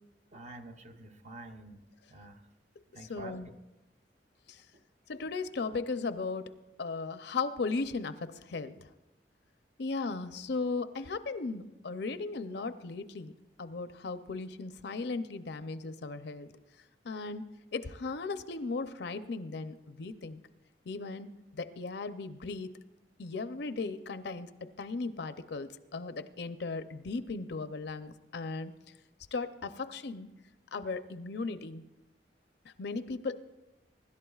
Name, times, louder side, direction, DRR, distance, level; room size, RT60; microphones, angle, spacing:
voice 1, 0.3-1.8 2.1-2.5 2.9-3.6 4.7-4.8, right 2 dB, 40° right, 6 dB, 0.8 m, -48 dB
voice 2, 3.1-3.5 4.5-4.6 5.1-6.5 6.8-8.7 9.8-13.3 13.6-16.5 17.0-17.4 17.7-20.4 20.9-21.3 21.5-22.7 23.2-24.5 24.8-28.7 29.3-30.3 30.7-31.8 32.8-33.4, left 3 dB, 70° left, 11 dB, 0.6 m, -36 dB
24.0 x 11.5 x 2.4 m, 1.0 s
head